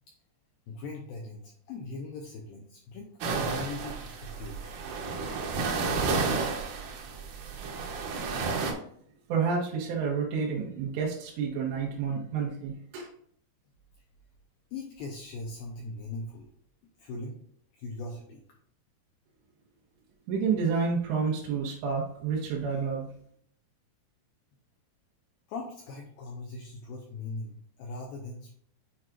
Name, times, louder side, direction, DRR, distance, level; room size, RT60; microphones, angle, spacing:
voice 1, 0.7-4.8 5.2-5.3 14.7-16.5 17.0-17.4 17.8-18.4 25.5-28.5, left 3 dB, 80° left, 0 dB, 2.2 m, -40 dB
sound 1, 3.2-8.7, right 4 dB, 70° right, 2.4 m, -31 dB
voice 2, 9.3-13.1 20.3-23.1, right 5 dB, 90° right, -3 dB, 3.2 m, -29 dB
8.6 x 4.5 x 2.5 m, 0.64 s
omnidirectional pair, 4.9 m